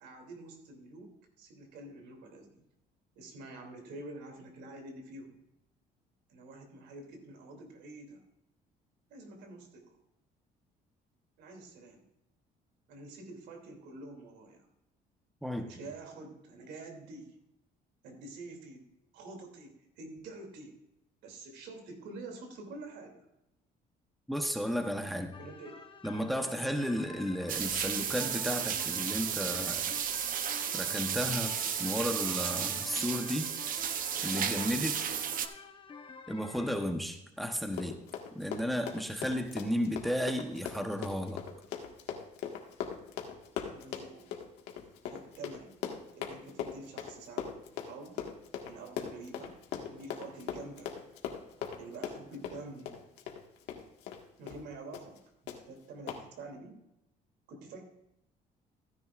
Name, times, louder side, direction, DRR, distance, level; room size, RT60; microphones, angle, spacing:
voice 1, 0.0-2.6 3.2-5.3 6.3-8.2 9.1-10.0 11.4-12.0 12.9-14.7 15.5-17.4 18.0-18.9 19.1-20.8 21.2-23.2 25.4-25.9 43.7-44.3 45.1-45.8 46.1-48.2 48.6-49.6 49.9-50.9 51.8-53.0 54.4-55.2 55.7-56.8 57.5-57.8, right 2 dB, 85° right, 3 dB, 2.9 m, -47 dB
voice 2, 24.3-25.3 26.0-30.0 30.7-33.5 34.2-35.0 36.3-38.0 38.3-41.4, equal, ahead, 5 dB, 1.0 m, -33 dB
sound 1, 25.3-36.8, left 5 dB, 30° left, 1.0 m, -49 dB
sound 2, 27.5-35.5, right 9 dB, 55° right, 0.8 m, -33 dB
Run, 37.6-54.2 54.5-54.6 54.9-55.2 55.5-55.6 56.1-56.2, left 8 dB, 90° left, 1.7 m, -40 dB
15.0 x 10.0 x 2.5 m, 0.86 s
cardioid pair, 110°, 17 cm